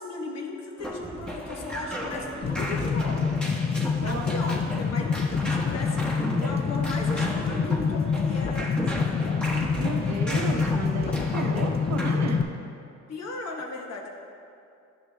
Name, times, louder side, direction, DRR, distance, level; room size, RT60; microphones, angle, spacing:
voice 1, 0.0-3.4 3.8-9.4 13.1-14.1, left 2 dB, 60° left, 1 dB, 1.1 m, -37 dB
sound 1, 0.8-12.2, equal, 5° left, 1.1 m, -35 dB
sound 2, 1.0-12.5, right 2 dB, 20° right, 0.8 m, -43 dB
sound 3, 2.4-12.4, left 5 dB, 30° left, 0.4 m, -26 dB
voice 2, 4.0-4.3 9.8-12.5, right 4 dB, 60° right, 3 dB, 0.8 m, -33 dB
11.0 x 6.6 x 2.2 m, 2.5 s
cardioid pair, 90°, 30 cm